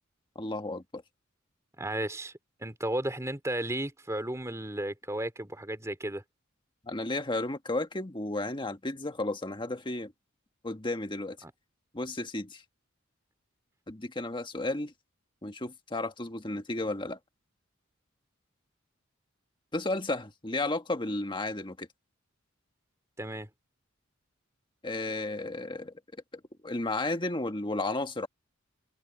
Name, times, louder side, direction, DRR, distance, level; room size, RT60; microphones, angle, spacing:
voice 1, 0.3-1.0 6.9-10.1 10.6-11.4 11.9-12.6 13.9-14.9 15.4-17.2 19.7-21.9 24.8-25.9 26.6-28.3, left 2 dB, 25° left, 1.6 m, -33 dB
voice 2, 1.8-2.3 2.6-6.2 11.4-11.5 23.2-23.5, right 1 dB, 15° right, 2.8 m, -34 dB
head